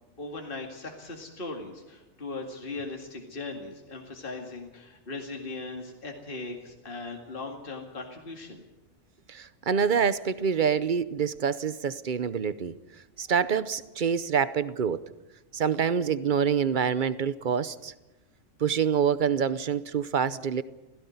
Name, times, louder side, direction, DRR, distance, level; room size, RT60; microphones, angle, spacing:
voice 1, 0.2-8.6, left 3 dB, 45° left, 2 dB, 2.3 m, -39 dB
voice 2, 9.3-12.7 13.2-15.0 15.5-17.9 18.6-20.6, right 7 dB, 45° right, 15 dB, 0.9 m, -26 dB
17.0 x 16.0 x 9.5 m, 1.1 s
omnidirectional pair, 1.3 m